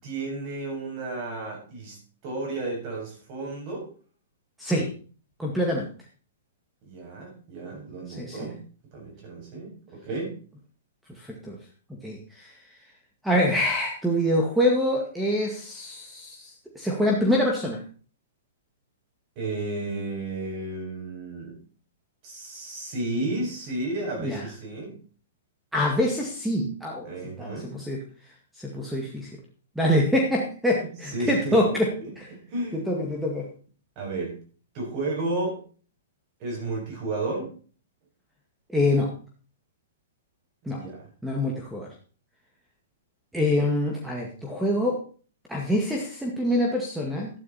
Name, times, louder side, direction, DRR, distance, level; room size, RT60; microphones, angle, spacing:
voice 1, 0.0-2.0 2.2-3.9 6.8-8.6 8.9-10.4 19.4-21.6 22.2-25.0 27.0-27.7 30.8-31.6 32.3-32.9 34.0-34.4 34.7-35.6 36.4-37.5 40.6-41.1, right 2 dB, 35° right, 0 dB, 6.9 m, -32 dB
voice 2, 5.4-5.9 8.2-8.5 11.2-11.6 11.9-12.5 13.2-17.8 24.2-24.4 25.7-27.1 27.4-28.0 28.6-29.3 29.8-31.9 32.2-32.3 32.7-33.5 38.7-39.1 40.7-40.8 41.2-41.9 43.3-45.0 45.5-47.3, left 1 dB, 5° right, 0 dB, 2.0 m, -25 dB
12.5 x 10.5 x 4.3 m, 0.41 s
hypercardioid pair, 145°, 0 cm